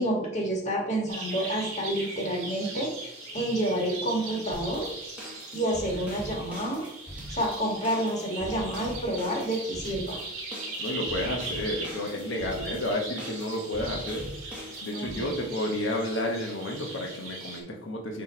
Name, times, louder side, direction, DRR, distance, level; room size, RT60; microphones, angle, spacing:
voice 1, 0.0-4.9 5.5-6.8 7.3-10.2 14.9-15.3, right 1 dB, 30° left, -2 dB, 1.8 m, -29 dB
sound 1, 1.1-17.6, right 2 dB, 65° right, 2.2 m, -39 dB
sound 2, 4.5-15.2, equal, 5° right, 1.8 m, -42 dB
voice 2, 10.8-14.3 14.8-18.2, left 1 dB, 55° left, 0 dB, 1.3 m, -31 dB
7.7 x 3.4 x 4.5 m, 0.83 s
head